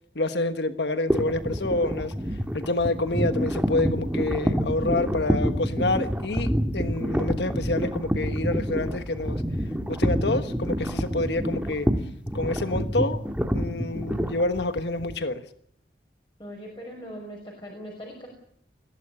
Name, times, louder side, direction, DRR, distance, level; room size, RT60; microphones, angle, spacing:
voice 1, 0.1-9.4 9.9-11.9 12.3-13.2 13.5-15.4, left 2 dB, 80° left, 1.3 m, -28 dB
sound 1, 1.1-15.2, equal, 5° right, 1.8 m, -27 dB
voice 2, 16.4-18.3, equal, 25° left, 5.6 m, -40 dB
21.5 x 17.0 x 9.9 m
head